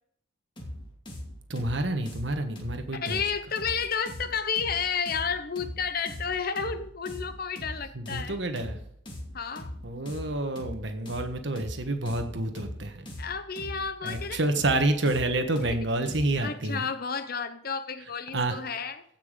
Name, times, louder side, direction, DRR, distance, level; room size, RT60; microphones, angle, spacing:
sound 1, 0.6-16.5, left 1 dB, 25° left, 2.4 m, -41 dB
voice 1, 1.5-3.2 7.9-8.8 9.8-13.1 14.0-16.9 18.3-18.6, right 2 dB, 65° right, 6 dB, 1.4 m, -28 dB
voice 2, 2.9-8.4 9.3-9.7 13.2-14.4 16.4-19.0, left 6 dB, 50° left, 11 dB, 0.7 m, -31 dB
16.5 x 6.0 x 5.1 m, 0.70 s
head